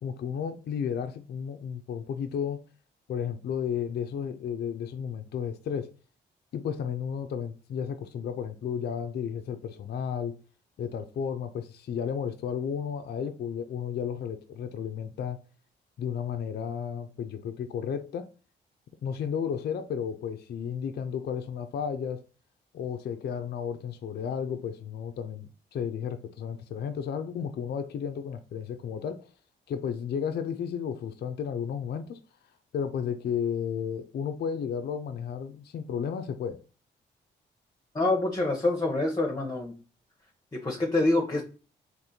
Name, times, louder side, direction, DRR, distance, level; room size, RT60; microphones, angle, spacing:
voice 1, 0.0-2.7 3.1-5.9 6.5-10.4 10.8-15.4 16.0-18.3 19.0-22.2 22.7-29.3 29.7-32.2 32.7-36.6, left 7 dB, 55° left, 0.4 m, -33 dB
voice 2, 37.9-39.8 40.5-41.4, left 2 dB, 20° left, 0.8 m, -26 dB
3.5 x 2.6 x 2.7 m
supercardioid pair, 55°, 20 cm